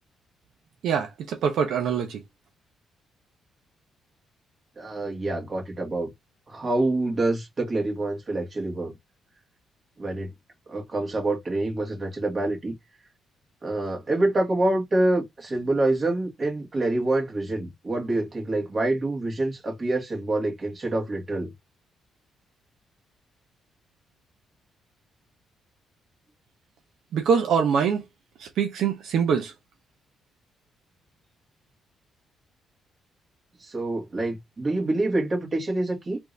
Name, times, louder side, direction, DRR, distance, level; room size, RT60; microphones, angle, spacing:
voice 1, 0.8-2.2 27.1-28.0 28.4-29.5, right 6 dB, 75° right, 0.7 m, -24 dB
voice 2, 4.8-6.1 6.5-8.9 10.0-10.3 10.7-12.7 13.6-21.5 33.6-36.2, right 2 dB, 35° right, 1.8 m, -26 dB
3.4 x 2.7 x 3.2 m
cardioid pair, 95°, 0 cm